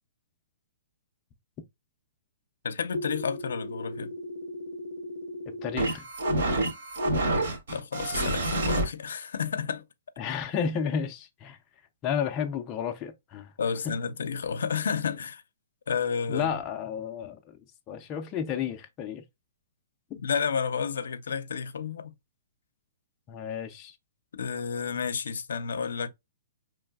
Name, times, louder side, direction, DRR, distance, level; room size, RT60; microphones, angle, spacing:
voice 1, 2.6-4.1 7.7-9.8 13.6-15.4 15.9-16.5 20.2-22.1 24.3-26.1, left 6 dB, 80° left, 0.5 m, -31 dB
sound 1, 2.9-8.8, right 1 dB, 65° right, 1.4 m, -30 dB
voice 2, 5.6-6.0 10.2-11.6 12.0-13.5 13.8-13.9 16.3-17.6 17.9-19.2 23.3-23.9, left 7 dB, 20° left, 0.3 m, -32 dB
4.6 x 3.1 x 2.2 m
hypercardioid pair, 170°, 0 cm